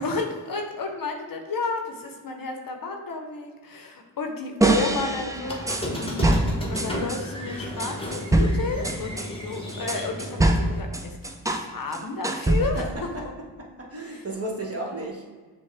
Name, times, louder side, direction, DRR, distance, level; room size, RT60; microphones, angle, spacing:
voice 1, 0.0-6.4 6.7-11.2 11.5-12.9 14.1-14.2 14.9-15.1, left 3 dB, 45° left, 3 dB, 0.7 m, -32 dB
sound 1, 4.6-7.2 7.8-11.7 11.9-13.0, right 1 dB, 10° right, 0.4 m, -24 dB
Squeak, 5.4-10.8, left 1 dB, 10° left, 1.1 m, -33 dB
voice 2, 12.7-13.2 13.6-15.3, right 1 dB, 30° right, -1 dB, 1.2 m, -34 dB
6.2 x 2.2 x 3.3 m, 1.4 s
supercardioid pair, 40°, 46 cm